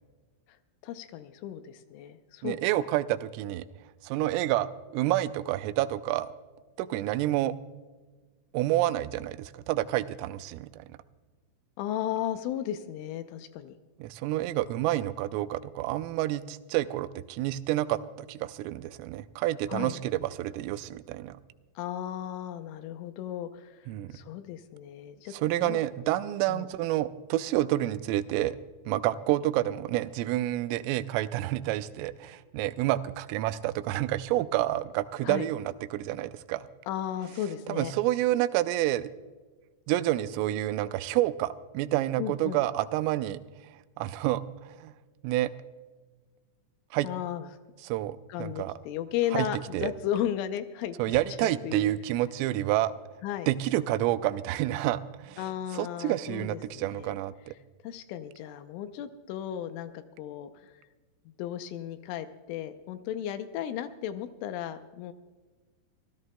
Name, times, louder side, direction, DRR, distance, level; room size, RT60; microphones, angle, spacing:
voice 1, 0.8-2.9 11.8-13.8 19.7-20.0 21.8-25.3 25.6-25.8 26.1-26.2 26.5-26.7 35.2-35.5 36.9-37.9 42.2-42.6 47.0-47.5 48.3-51.9 53.2-53.5 55.4-57.2 57.8-60.7 61.4-65.1, left 11 dB, 80° left, 9 dB, 3.0 m, -35 dB
voice 2, 2.4-3.6 4.0-6.3 6.8-7.5 8.5-10.9 14.0-21.4 23.9-24.1 25.3-28.6 28.9-36.7 37.7-39.1 39.9-43.4 44.0-44.9 45.2-45.5 46.9-47.1 47.8-48.7 49.3-49.5 49.7-49.9 51.0-52.9 53.5-55.4 55.7-57.5, right 14 dB, 85° right, 12 dB, 3.1 m, -29 dB
26.0 x 16.0 x 2.2 m, 1.3 s
omnidirectional pair, 5.9 m